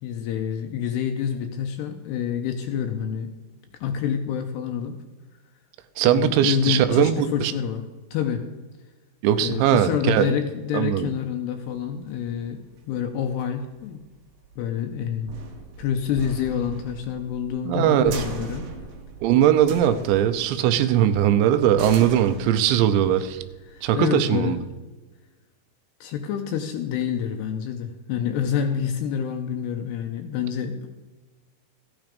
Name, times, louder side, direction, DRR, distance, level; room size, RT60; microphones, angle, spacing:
voice 1, 0.0-3.3 3.8-5.0 6.0-7.8 8.1-8.4 9.4-14.0 14.6-15.4 15.8-18.7 23.7-24.7 26.0-30.9, left 8 dB, 85° left, 5 dB, 2.5 m, -27 dB
voice 2, 6.0-7.5 9.2-10.4 10.7-11.1 17.7-18.2 19.2-23.4 23.8-24.6, right 10 dB, 80° right, 10 dB, 2.8 m, -20 dB
sound 1, 11.7-24.7, right 3 dB, 60° right, 2.7 m, -39 dB
14.0 x 9.2 x 5.2 m, 1.2 s
omnidirectional pair, 5.6 m